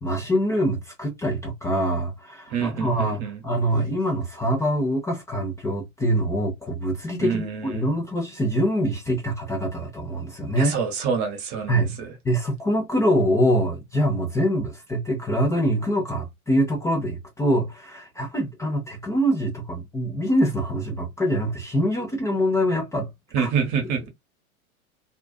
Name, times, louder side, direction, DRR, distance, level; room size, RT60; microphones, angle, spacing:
voice 1, 0.0-10.8 11.7-12.0 12.2-23.1 23.4-23.5, equal, 5° left, 0.4 m, -24 dB
voice 2, 2.5-3.4 7.2-7.9 10.6-12.1 23.3-24.1, right 6 dB, 40° right, 1.0 m, -27 dB
2.3 x 2.3 x 2.3 m
hypercardioid pair, 105°, 43 cm